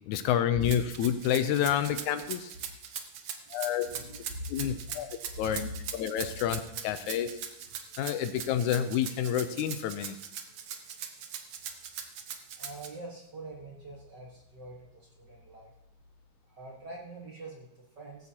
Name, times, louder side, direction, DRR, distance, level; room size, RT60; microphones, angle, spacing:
voice 1, 0.1-2.5 3.5-3.9 4.5-5.1 5.4-7.4 8.0-10.2, left 9 dB, 80° left, 10 dB, 2.0 m, -29 dB
Rattle (instrument), 0.6-12.9, right 8 dB, 65° right, 1.7 m, -40 dB
voice 2, 3.8-4.6 5.3-5.8 7.1-7.3 12.6-15.7 16.5-18.3, right 1 dB, 45° right, -2 dB, 1.6 m, -44 dB
17.5 x 15.0 x 2.9 m, 0.82 s
omnidirectional pair, 3.6 m